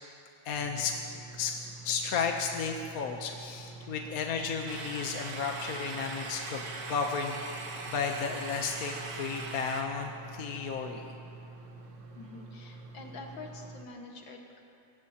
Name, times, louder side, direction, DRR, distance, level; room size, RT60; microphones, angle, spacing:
voice 1, 0.4-0.9 1.3-1.5 1.8-11.1, left 5 dB, 60° left, 3 dB, 1.2 m, -33 dB
sound 1, 0.6-13.8, right 2 dB, 80° right, 1.8 m, -47 dB
sound 2, 4.7-9.8, right 4 dB, 60° right, 1.6 m, -41 dB
voice 2, 12.1-14.6, left 3 dB, 85° left, 1 dB, 2.3 m, -46 dB
23.5 x 18.0 x 2.9 m, 2.5 s
omnidirectional pair, 2.0 m